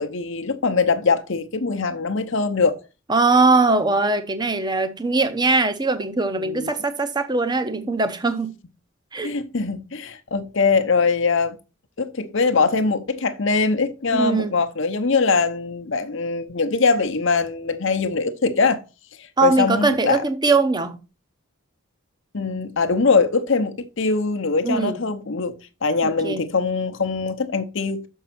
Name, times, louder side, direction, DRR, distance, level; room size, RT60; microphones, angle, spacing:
voice 1, 0.0-2.8 6.4-6.8 9.2-11.5 12.0-18.8 19.2-20.2 22.3-25.5 25.8-28.0, left 4 dB, 55° left, 0.8 m, -22 dB
voice 2, 3.1-8.5 9.1-9.3 14.1-14.5 19.4-21.0 24.6-25.0 26.0-26.4, right 3 dB, 20° right, 0.8 m, -21 dB
6.6 x 5.5 x 5.8 m
head